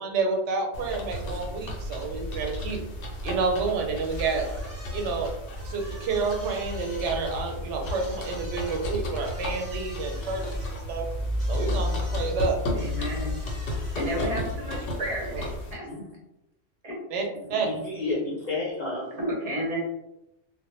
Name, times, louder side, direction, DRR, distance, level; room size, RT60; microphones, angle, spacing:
voice 1, 0.0-2.8 3.2-4.5 4.9-5.3 5.6-11.1 11.5-12.6 15.3-15.5 17.1-17.2 17.5-17.7, right 4 dB, 90° right, 2 dB, 0.9 m, -29 dB
sound 1, 0.7-15.7, left 1 dB, 75° left, 0.9 m, -32 dB
sound 2, 4.1-14.5, equal, 5° right, 0.9 m, -48 dB
voice 2, 12.7-13.3 14.0-15.9 16.8-17.0 19.2-19.8, right 1 dB, 40° right, -4 dB, 0.6 m, -32 dB
voice 3, 14.0-14.3 15.9-16.1 17.5-19.2, left 2 dB, 45° left, -5 dB, 0.7 m, -32 dB
2.1 x 2.0 x 3.0 m, 0.86 s
omnidirectional pair, 1.2 m